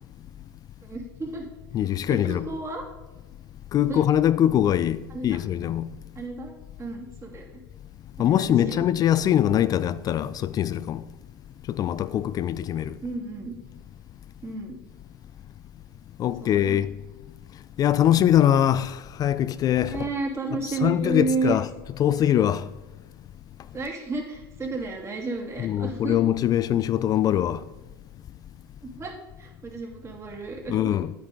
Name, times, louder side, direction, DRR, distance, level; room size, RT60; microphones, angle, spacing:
voice 1, 0.8-1.5 2.1-2.8 3.8-4.1 5.1-5.4 6.1-7.6 8.2-8.9 13.0-13.5 14.4-14.8 16.4-16.8 19.9-21.6 23.7-26.2 28.8-31.0, right 3 dB, 20° right, 2.6 m, -32 dB
voice 2, 1.7-2.5 3.7-5.9 8.2-11.0 11.7-12.9 16.2-16.9 17.8-20.1 20.7-21.7 22.0-22.7 25.6-27.6 30.7-31.1, left 11 dB, 30° left, 0.4 m, -22 dB
10.5 x 8.8 x 3.8 m
hypercardioid pair, 90°, 12 cm